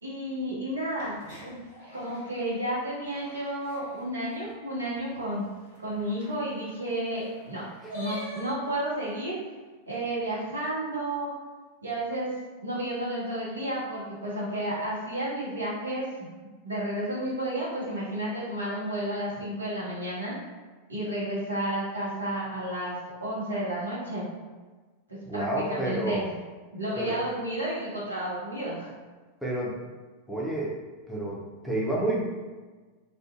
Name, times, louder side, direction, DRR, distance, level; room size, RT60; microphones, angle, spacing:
voice 1, 0.0-1.5 1.9-5.5 5.8-7.7 7.9-9.4 9.9-11.3 11.8-12.3 12.6-16.3 16.6-20.3 20.9-24.3 25.1-26.3 26.7-28.9, right 1 dB, 75° right, -6 dB, 0.8 m, -32 dB
sound 1, 0.9-4.1 4.5-4.6 4.8-4.9 5.1-9.1, right 1 dB, 50° right, 1.5 m, -46 dB
voice 2, 25.2-26.2 27.0-27.2 29.4-29.8 30.3-30.8 31.1-32.2, right 1 dB, ahead, -5 dB, 0.6 m, -29 dB
2.4 x 2.1 x 2.5 m, 1.3 s
figure-of-eight pair, 90°, 0 cm